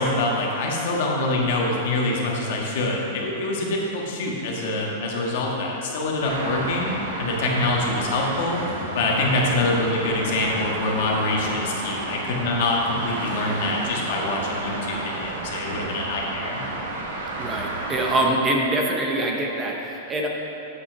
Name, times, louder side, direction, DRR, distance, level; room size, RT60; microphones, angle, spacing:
voice 1, 0.0-8.6 8.9-16.6, left 2 dB, 55° left, -2 dB, 1.5 m, -25 dB
Traffic noise roadway noise, 6.2-18.3, right 2 dB, 85° right, 1.7 m, -31 dB
voice 2, 17.4-20.3, right 1 dB, 15° right, -1 dB, 0.6 m, -24 dB
8.4 x 5.4 x 5.9 m, 2.9 s
supercardioid pair, 170°, 0 cm